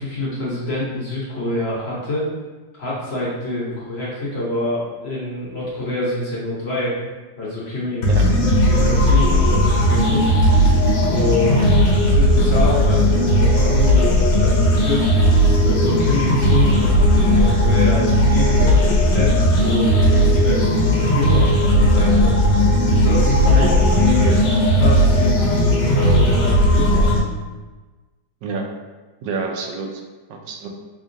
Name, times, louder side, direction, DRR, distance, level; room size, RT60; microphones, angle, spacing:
voice 1, 0.0-2.3 2.7-7.0 7.4-10.3 11.1-11.8 12.0-15.1 15.6-21.5 21.9-22.3 22.9-24.4 24.7-27.1, left 1 dB, 50° left, -6 dB, 0.9 m, -26 dB
sound 1, 8.0-27.2, equal, 75° left, 1.5 m, -16 dB
voice 2, 29.2-30.0 30.3-30.7, right 4 dB, 75° right, 1 dB, 1.2 m, -28 dB
3.7 x 3.5 x 2.6 m, 1.2 s
omnidirectional pair, 2.0 m